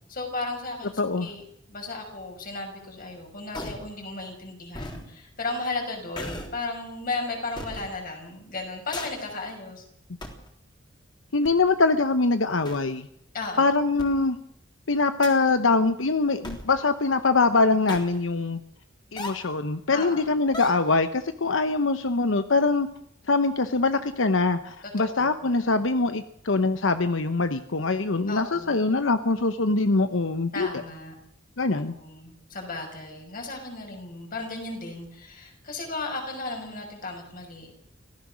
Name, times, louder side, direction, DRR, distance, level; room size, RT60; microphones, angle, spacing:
voice 1, 0.1-9.8 13.3-13.6 19.9-20.3 25.0-25.5 28.3-28.8 30.5-31.1 31.7-37.7, left 3 dB, 50° left, 3 dB, 5.9 m, -35 dB
voice 2, 1.0-1.3 11.3-13.1 13.6-14.4 14.9-18.6 19.1-22.9 23.3-30.7 31.6-31.9, left 3 dB, 90° left, 10 dB, 1.0 m, -23 dB
sound 1, 3.5-3.9 4.7-5.0 6.2-6.6 7.6-7.9 8.9-9.3 10.2-10.5 11.4-11.5 12.6-12.7 14.0-14.1 15.2-15.5 16.4-16.7 17.9-18.2 19.2-19.5 20.5-20.9, left 1 dB, 25° left, 3.6 m, -36 dB
25.0 x 17.0 x 6.3 m, 0.72 s
head